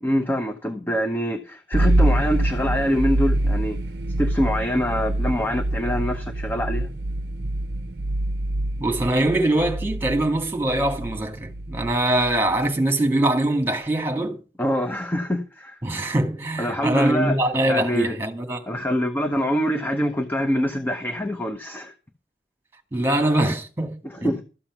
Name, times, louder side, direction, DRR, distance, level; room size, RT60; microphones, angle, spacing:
voice 1, 0.0-3.8 4.2-6.9 14.6-15.8 16.6-17.4 17.7-18.2 18.7-21.9 24.0-24.4, equal, 10° left, 0.8 m, -24 dB
sound 1, 1.7-12.7, right 1 dB, 65° right, 0.6 m, -25 dB
voice 2, 8.8-14.4 15.8-18.8 22.9-24.0 24.2-24.3, right 1 dB, 10° right, 1.9 m, -23 dB
13.0 x 7.4 x 6.0 m
head